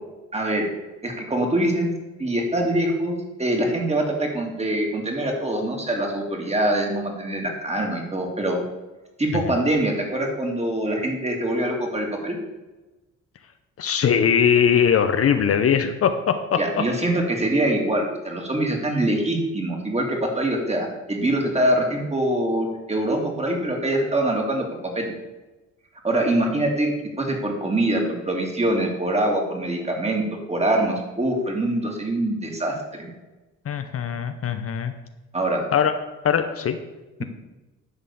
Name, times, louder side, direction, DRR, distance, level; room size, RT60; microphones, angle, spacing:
voice 1, 0.3-0.7 1.0-1.9 2.2-8.6 9.2-12.4 16.6-24.7 24.9-25.1 26.0-33.1 35.3-35.6 37.2-37.3, right 1 dB, 20° right, 1 dB, 2.3 m, -24 dB
voice 2, 13.8-16.8 33.7-34.9 35.7-35.9 36.2-36.8, left 7 dB, 50° left, 8 dB, 0.8 m, -21 dB
11.0 x 4.1 x 6.9 m, 1.1 s
cardioid pair, 90°, 30 cm